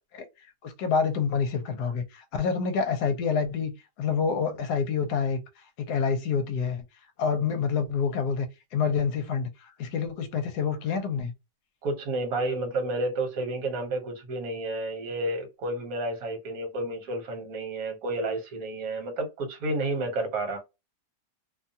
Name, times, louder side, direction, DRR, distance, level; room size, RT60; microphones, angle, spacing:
voice 1, 0.6-3.7 4.0-5.4 5.8-6.8 7.2-8.5 8.7-11.3, left 6 dB, 75° left, 1.1 m, -27 dB
voice 2, 11.8-20.6, right 2 dB, 60° right, 1.3 m, -31 dB
2.8 x 2.2 x 2.7 m
omnidirectional pair, 1.8 m